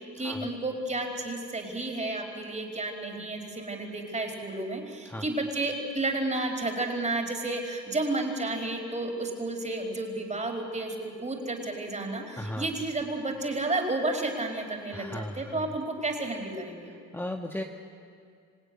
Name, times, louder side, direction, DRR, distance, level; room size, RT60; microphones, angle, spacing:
voice 1, 0.2-16.9, right 2 dB, 25° right, 3 dB, 4.8 m, -32 dB
voice 2, 12.4-12.7 14.9-15.6 17.1-17.6, left 1 dB, 5° left, 2 dB, 1.4 m, -36 dB
27.0 x 17.0 x 10.0 m, 2.3 s
cardioid pair, 90°, 30 cm